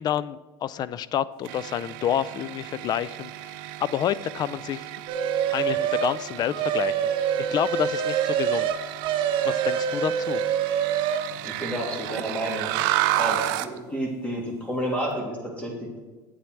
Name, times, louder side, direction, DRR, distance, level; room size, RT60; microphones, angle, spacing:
voice 1, 0.0-3.5 3.8-4.9 5.5-8.7 9.4-10.4, left 10 dB, 40° left, 18 dB, 0.4 m, -29 dB
sound 1, 1.4-13.8, right 15 dB, 75° right, 0.5 m, -32 dB
sound 2, 5.1-6.2 6.5-11.3, right 8 dB, 50° right, 1.0 m, -25 dB
voice 2, 11.4-12.7 13.1-16.0, equal, 10° left, -1 dB, 2.4 m, -30 dB
8.4 x 7.4 x 4.5 m, 1.2 s
supercardioid pair, 115°, 11 cm